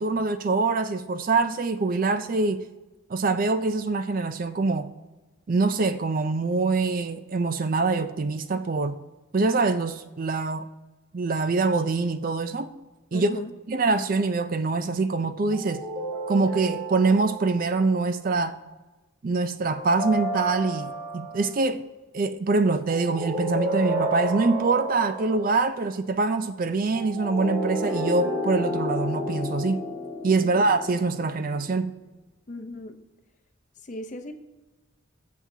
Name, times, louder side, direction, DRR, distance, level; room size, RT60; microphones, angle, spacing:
voice 1, 0.0-2.6 3.1-4.9 5.5-9.0 9.3-10.7 11.1-12.7 13.1-13.4 13.7-15.8 16.3-18.6 19.2-21.8 22.1-29.8 30.2-31.9, right 3 dB, 40° right, 0.4 m, -24 dB
voice 2, 13.1-13.5 30.4-30.5 32.5-33.0 33.8-34.3, left 1 dB, 35° left, 0.7 m, -37 dB
sound 1, 15.5-18.0 19.7-21.5 22.9-25.6 26.9-31.5, equal, 20° right, 3.2 m, -31 dB
20.5 x 7.3 x 2.8 m
head